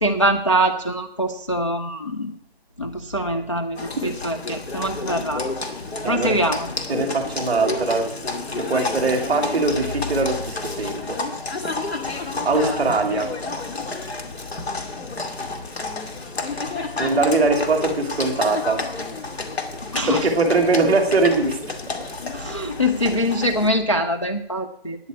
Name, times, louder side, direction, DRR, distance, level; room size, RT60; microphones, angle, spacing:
voice 1, 0.0-2.3 2.8-3.8 4.0-5.4 6.1-6.7 12.5-12.7 13.1-13.2 19.9-20.2 22.3-25.0, equal, 30° left, 3 dB, 0.4 m, -23 dB
Livestock farm animals working animals, 3.7-23.7, left 3 dB, 90° left, 2.3 m, -30 dB
voice 2, 6.0-6.4 6.9-8.1 8.5-11.2 12.4-13.3 17.0-18.8 20.1-21.6, right 3 dB, 5° right, -9 dB, 1.3 m, -21 dB
10.0 x 8.3 x 8.3 m, 0.71 s
hypercardioid pair, 180°, 31 cm